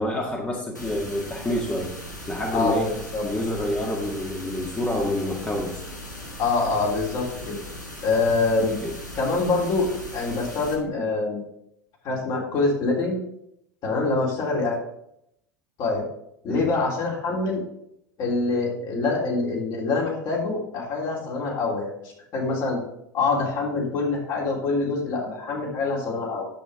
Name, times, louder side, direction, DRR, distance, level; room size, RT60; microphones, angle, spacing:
voice 1, 0.0-1.9 2.3-2.9 3.2-5.8 8.8-8.9 16.5-16.6, left 1 dB, 15° left, -2 dB, 1.8 m, -27 dB
sound 1, 0.7-10.7, left 1 dB, 90° left, 1.7 m, -38 dB
voice 2, 2.5-3.2 6.4-7.6 8.0-8.7 9.2-11.4 12.0-13.2 13.8-14.8 15.8-16.0 16.4-17.6 18.2-21.9 22.3-22.8 23.1-26.5, left 3 dB, 45° left, -3 dB, 3.3 m, -25 dB
10.5 x 7.9 x 3.6 m, 0.76 s
figure-of-eight pair, 75°, 9 cm